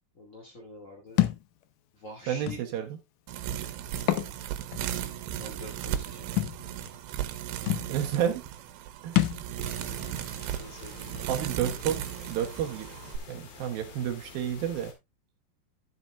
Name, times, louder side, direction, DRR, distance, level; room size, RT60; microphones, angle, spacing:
voice 1, 0.1-1.2 1.9-2.6 5.4-6.9 7.8-7.9 9.6-10.0 10.5-11.2, left 1 dB, 40° left, 1.1 m, -46 dB
Thump thud, 1.2-1.4 2.5-2.6 4.0-4.3 4.7-4.8 6.4-6.6 7.4-7.5 7.7-7.9 9.1-9.4, left 15 dB, 90° left, 1.8 m, -25 dB
voice 2, 2.3-3.0 7.9-8.4 9.0-9.2 11.3-12.9 13.3-14.9, right 9 dB, 70° right, 2.6 m, -30 dB
sound 1, 3.3-13.2, right 11 dB, 90° right, 3.1 m, -36 dB
sound 2, 9.6-14.9, left 5 dB, 70° left, 4.2 m, -48 dB
13.0 x 7.7 x 2.4 m
omnidirectional pair, 4.9 m